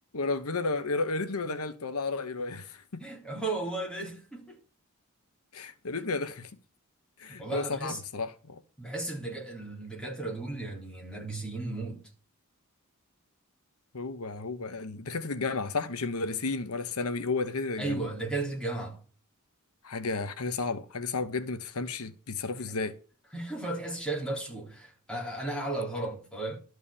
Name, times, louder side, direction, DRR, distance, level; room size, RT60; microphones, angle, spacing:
voice 1, 0.1-3.0 5.5-6.5 7.2-8.6 13.9-18.0 19.8-22.9, left 3 dB, 80° left, 1.0 m, -32 dB
voice 2, 3.0-4.6 7.2-8.0 8.8-12.0 17.8-19.0 23.3-26.6, right 2 dB, 5° left, 3.5 m, -35 dB
12.5 x 4.8 x 8.6 m
head